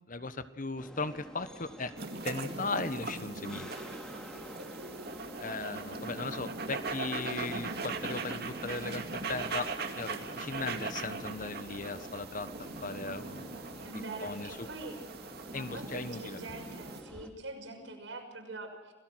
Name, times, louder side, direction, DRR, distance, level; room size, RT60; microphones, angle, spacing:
voice 1, 0.1-1.9 2.2-3.7 5.4-9.0 9.3-9.7 9.9-12.5 12.8-13.9 14.2-14.7 15.5-16.4, left 3 dB, 45° left, 12 dB, 1.3 m, -37 dB
sound 1, 0.8-17.3, equal, 5° left, 2.3 m, -49 dB
sound 2, 2.0-17.0, right 4 dB, 60° right, 2.3 m, -40 dB
voice 2, 5.6-5.9 13.8-14.9 15.5-18.9, right 2 dB, 80° right, 2 dB, 6.2 m, -44 dB
28.5 x 18.0 x 6.4 m, 1.1 s
head